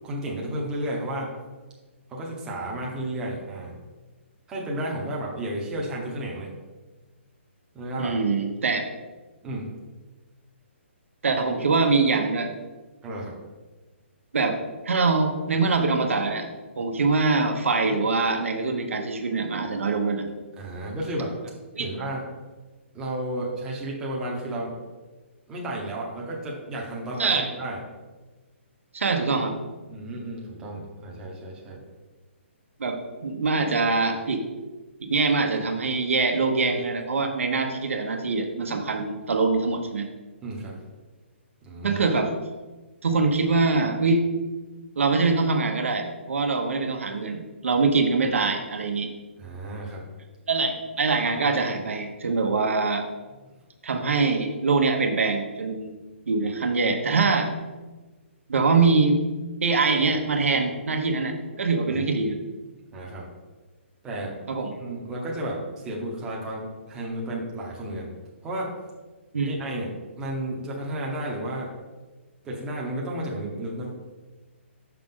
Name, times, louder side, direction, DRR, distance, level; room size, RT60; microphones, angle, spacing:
voice 1, 0.0-1.3 2.1-3.8 4.5-6.5 7.7-8.2 9.4-9.7 13.0-13.4 20.6-21.4 21.8-22.3 22.9-24.8 25.5-27.8 29.9-31.8 40.4-40.8 41.6-42.0 49.4-50.0 61.9-62.0 62.9-63.3 64.0-64.4 64.8-68.1 68.4-68.7 69.4-71.7 72.4-73.9, right 1 dB, 10° right, -3 dB, 0.8 m, -32 dB
voice 2, 8.0-8.9 11.2-12.5 14.3-14.6 14.8-16.5 16.8-20.3 21.7-21.9 27.2-27.5 28.9-29.5 32.8-34.4 35.0-40.1 41.8-42.3 43.0-44.2 45.0-49.1 50.5-53.0 53.8-55.9 56.3-57.5 58.5-59.2 59.6-62.4 64.5-64.7 69.3-69.6, right 4 dB, 80° right, 5 dB, 1.1 m, -23 dB
6.3 x 5.8 x 3.7 m, 1.2 s
hypercardioid pair, 175°, 7 cm